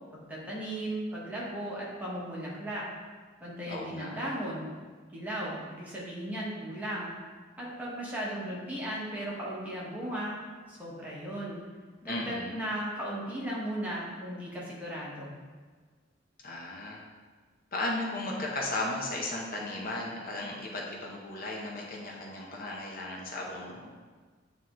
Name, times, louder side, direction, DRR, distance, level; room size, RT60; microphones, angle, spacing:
voice 1, 0.1-2.8 3.4-4.7 5.1-7.1 7.6-10.4 10.7-11.6 12.0-15.3, right 1 dB, 10° right, -6 dB, 1.3 m, -36 dB
voice 2, 3.7-4.2 12.0-12.6 16.4-17.0 17.7-23.9, left 2 dB, 50° left, -2 dB, 0.8 m, -35 dB
8.9 x 3.0 x 3.8 m, 1.5 s
head